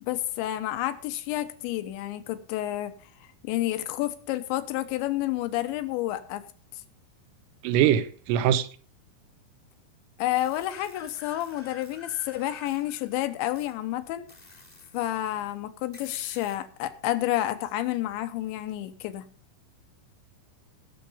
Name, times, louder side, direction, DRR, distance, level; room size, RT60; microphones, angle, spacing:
voice 1, 0.0-3.0 3.4-6.4 6.7-6.8 10.2-14.3 14.9-19.2, left 14 dB, 75° left, 2.9 m, -30 dB
voice 2, 7.6-8.7, right 10 dB, 85° right, 3.4 m, -22 dB
sound 1, 10.3-13.3 13.5-13.7 14.3-15.0 15.9-16.6, left 3 dB, 35° left, 0.6 m, -50 dB
19.5 x 6.7 x 5.1 m
omnidirectional pair, 5.9 m